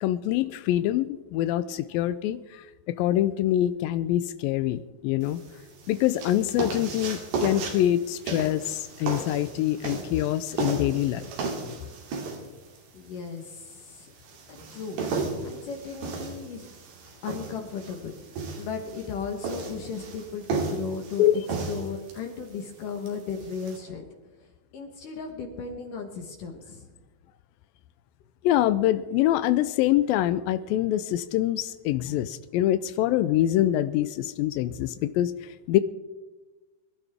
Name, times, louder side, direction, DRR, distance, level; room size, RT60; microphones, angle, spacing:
voice 1, 0.0-5.4 5.9-11.3 21.2-21.4 28.4-35.3 35.7-35.8, left 13 dB, 90° left, 13 dB, 2.0 m, -25 dB
sound 1, 5.2-23.8, right 4 dB, 85° right, 4.6 m, -35 dB
voice 2, 12.9-14.1 14.5-15.0 15.4-16.7 17.2-18.2 18.6-24.1 24.4-26.9, left 5 dB, 65° left, 3 dB, 2.5 m, -36 dB
24.5 x 12.0 x 3.5 m, 1.2 s
omnidirectional pair, 4.7 m